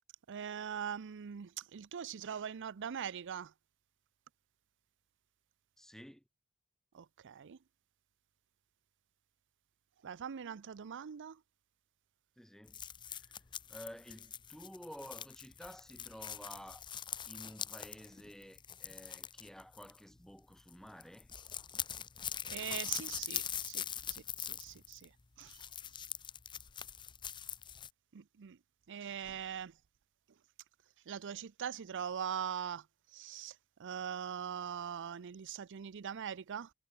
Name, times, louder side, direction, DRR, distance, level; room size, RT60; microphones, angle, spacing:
voice 1, 0.3-3.5 6.9-7.6 10.0-11.4 22.5-25.6 28.1-28.6 28.9-29.8 31.1-36.7, right 8 dB, 55° right, 0.5 m, -42 dB
voice 2, 5.8-6.2 12.4-12.8 13.1-13.3 13.7-16.8 17.3-21.3, equal, ahead, 1.7 m, -52 dB
sound 1, 12.7-20.3 20.6-20.8 21.0-27.9, left 9 dB, 20° left, 0.5 m, -43 dB
head